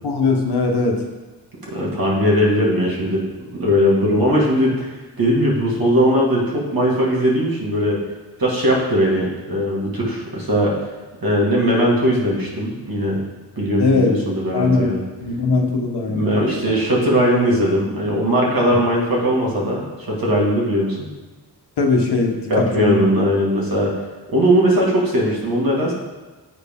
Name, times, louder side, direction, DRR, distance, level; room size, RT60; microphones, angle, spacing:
voice 1, 0.0-1.0 13.8-14.1 14.5-14.9 15.2-16.3 16.7-16.8 18.7-18.8 21.8-23.0, left 3 dB, 65° left, 2 dB, 1.1 m, -20 dB
voice 2, 1.7-4.9 5.2-8.0 8.4-10.8 11.2-13.2 13.6-15.0 16.1-21.1 22.5-23.9 24.3-25.9, equal, 55° right, -4 dB, 2.1 m, -19 dB
8.1 x 4.6 x 3.5 m, 1.2 s
cardioid pair, 60°, 42 cm